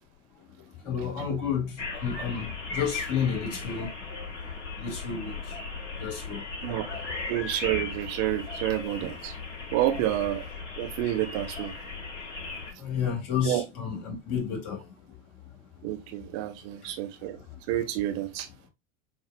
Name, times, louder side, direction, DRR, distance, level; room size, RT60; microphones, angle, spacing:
voice 1, 0.8-3.9 4.8-5.6 6.0-6.4 12.8-14.9, left 7 dB, 55° left, 1.7 m, -31 dB
sound 1, 1.8-12.7, left 4 dB, 70° left, 1.4 m, -37 dB
voice 2, 6.6-9.3 9.7-10.4 10.8-11.7 13.4-13.6 15.8-17.4 17.7-18.5, right 13 dB, 50° right, 0.8 m, -29 dB
6.7 x 2.4 x 2.2 m
figure-of-eight pair, 80°, 37 cm